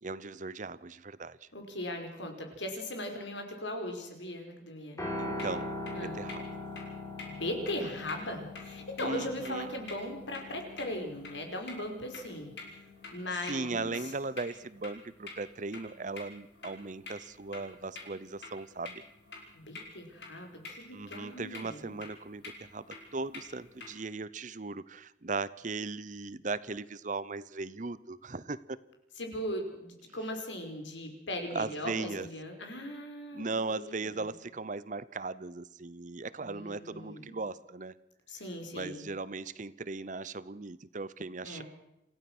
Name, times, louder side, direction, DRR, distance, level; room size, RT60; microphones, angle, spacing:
voice 1, 0.0-1.5 5.2-5.7 6.0-6.6 9.0-9.7 13.5-19.0 20.9-22.9 23.1-28.8 31.5-32.3 33.3-37.9 38.7-41.6, right 3 dB, 40° right, 18 dB, 0.7 m, -38 dB
voice 2, 1.5-5.0 5.9-6.2 7.3-12.5 13.1-14.1 19.5-22.0 29.2-34.3 36.4-37.4 38.3-39.0 41.4-41.6, left 1 dB, 80° left, 4 dB, 5.0 m, -39 dB
Piano, 5.0-13.2, left 1 dB, 15° left, 5.3 m, -42 dB
sound 1, 5.2-23.9, left 3 dB, 65° left, 5.3 m, -49 dB
27.0 x 16.0 x 6.2 m, 0.87 s
head